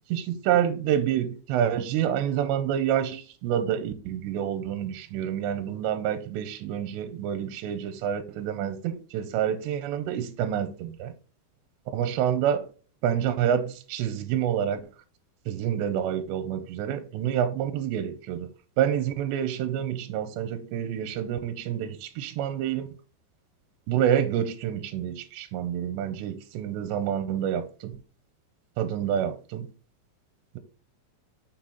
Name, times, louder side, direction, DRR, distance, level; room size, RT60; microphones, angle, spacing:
voice 1, 0.1-11.1 11.9-12.7 13.0-14.8 15.5-18.5 18.8-22.9 23.9-28.0 28.8-29.7, right 9 dB, 80° right, 2.8 m, -28 dB
6.9 x 5.9 x 3.9 m
omnidirectional pair, 5.4 m